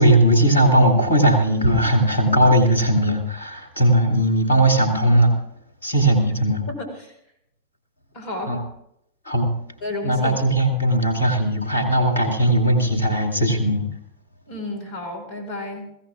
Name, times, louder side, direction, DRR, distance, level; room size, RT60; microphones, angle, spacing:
voice 1, 0.0-5.4 5.8-6.6 8.5-8.6 9.3-9.5 10.0-13.9, right 1 dB, 75° left, 3 dB, 2.4 m, -18 dB
voice 2, 6.7-7.1 8.1-8.6 9.8-10.4 14.5-15.9, left 1 dB, 45° left, 4 dB, 4.6 m, -31 dB
22.0 x 16.0 x 2.5 m, 0.76 s
figure-of-eight pair, 90°, 0 cm